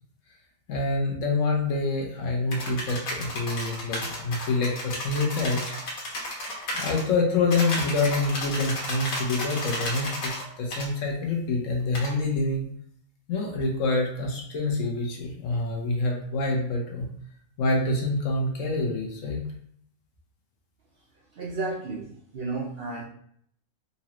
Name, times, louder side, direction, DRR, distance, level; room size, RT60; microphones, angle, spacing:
voice 1, 0.7-5.6 6.7-12.7 13.3-17.1 17.6-19.4, left 3 dB, 70° left, -1 dB, 1.1 m, -26 dB
sound 1, 2.5-7.0 7.5-10.4 10.7-10.9 11.9-12.1, left 1 dB, 85° left, 1.5 m, -33 dB
voice 2, 21.3-23.0, right 3 dB, 60° right, -3 dB, 0.7 m, -32 dB
4.1 x 2.5 x 2.9 m, 0.65 s
omnidirectional pair, 1.5 m